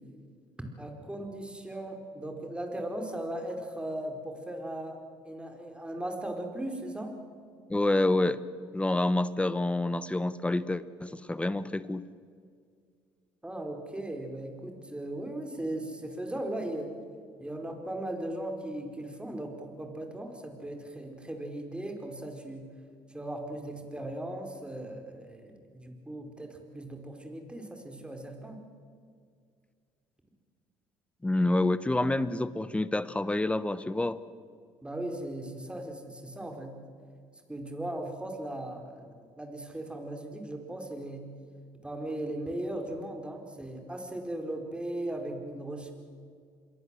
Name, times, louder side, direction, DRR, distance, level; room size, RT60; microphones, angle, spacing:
voice 1, 0.8-5.0 5.2-7.1 13.4-16.9 17.4-22.6 23.1-28.6 34.8-36.8 37.5-41.3 41.8-45.9, right 1 dB, 10° right, 4 dB, 4.7 m, -38 dB
voice 2, 7.7-8.4 8.7-12.0 31.2-34.2, left 2 dB, 10° left, 15 dB, 1.1 m, -28 dB
26.5 x 22.5 x 7.7 m, 2.1 s
supercardioid pair, 85°, 10 cm